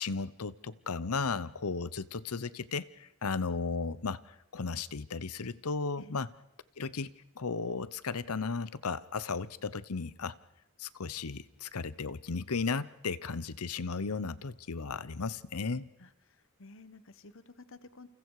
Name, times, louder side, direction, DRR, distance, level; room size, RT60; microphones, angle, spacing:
voice 1, 0.0-4.2 4.5-6.3 6.8-7.1 7.4-10.4 10.8-15.9, left 4 dB, 80° left, 17 dB, 0.8 m, -35 dB
voice 2, 16.6-18.1, left 3 dB, 60° left, 13 dB, 1.3 m, -52 dB
29.0 x 29.0 x 4.9 m, 0.87 s
head